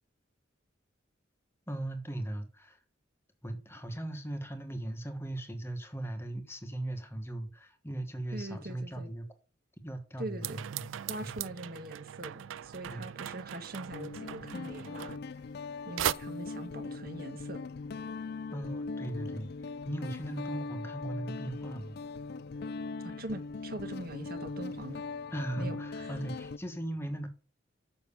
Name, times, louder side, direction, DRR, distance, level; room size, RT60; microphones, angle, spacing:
voice 1, 1.7-2.8 3.4-9.3 9.8-10.9 11.2-11.3 12.9-13.0 18.5-22.0 25.3-27.3, right 1 dB, 10° left, 1.3 m, -38 dB
voice 2, 8.3-9.1 10.2-10.6 11.1-15.2 15.8-17.6 23.0-25.0 25.6-26.1, right 1 dB, 50° right, 1.3 m, -42 dB
sound 1, 10.4-15.7 16.0-16.1, right 10 dB, 75° right, 0.4 m, -38 dB
Guitar, 12.6-12.9 13.9-26.6, left 4 dB, 55° left, 0.4 m, -40 dB
7.0 x 6.1 x 6.9 m
head